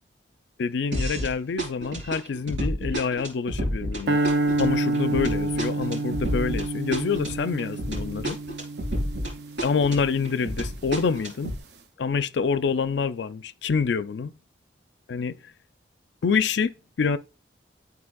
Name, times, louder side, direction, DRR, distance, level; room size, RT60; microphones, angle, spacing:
voice 1, 0.6-4.2 4.6-8.4 9.6-11.5 12.0-14.3 15.1-15.4 16.2-17.2, left 5 dB, 70° left, 0.4 m, -26 dB
sound 1, 0.9-1.3 1.6-9.3 9.6-11.6, equal, 85° right, 3.0 m, -30 dB
sound 2, 4.1-10.4, right 2 dB, 60° right, 0.6 m, -28 dB
11.0 x 4.0 x 2.3 m
head